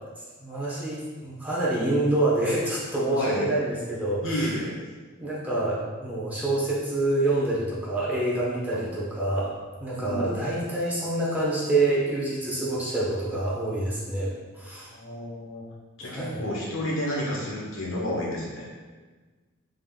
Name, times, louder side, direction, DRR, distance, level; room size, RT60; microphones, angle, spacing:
voice 1, 0.4-4.6 5.2-9.5 9.8-14.9 16.1-16.4, right 2 dB, 5° right, -7 dB, 0.7 m, -27 dB
voice 2, 3.1-3.5 4.2-4.7 8.7-8.8 9.9-10.3 14.9-15.6 16.0-18.7, left 1 dB, 65° left, -4 dB, 1.0 m, -30 dB
3.7 x 2.5 x 3.7 m, 1.3 s
head